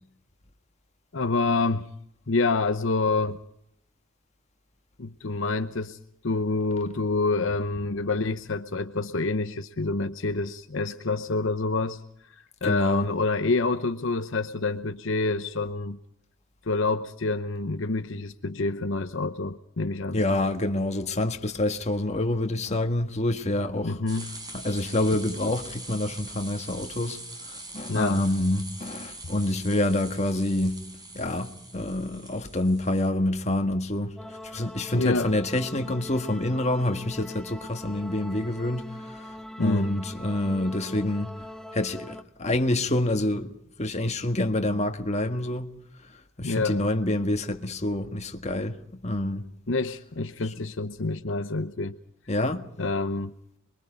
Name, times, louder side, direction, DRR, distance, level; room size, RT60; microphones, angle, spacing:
voice 1, 1.1-1.9 2.3-3.4 5.0-6.0 6.2-12.0 12.3-16.0 16.7-20.2 23.8-24.3 27.9-28.2 34.9-35.3 39.6-39.9 46.4-46.8 49.7-52.0 52.8-53.3, left 3 dB, 65° left, 0.9 m, -27 dB
voice 2, 12.6-13.1 20.1-24.0 24.5-30.8 31.1-34.2 34.5-41.4 41.7-45.7 46.0-46.1 46.4-48.8 49.0-49.5 50.4-50.5 52.3-52.7, left 1 dB, 35° left, 1.7 m, -27 dB
sound 1, 24.1-33.1, right 2 dB, 20° right, 4.9 m, -43 dB
sound 2, 34.2-42.2, left 1 dB, ahead, 0.8 m, -42 dB
27.0 x 22.5 x 5.2 m
head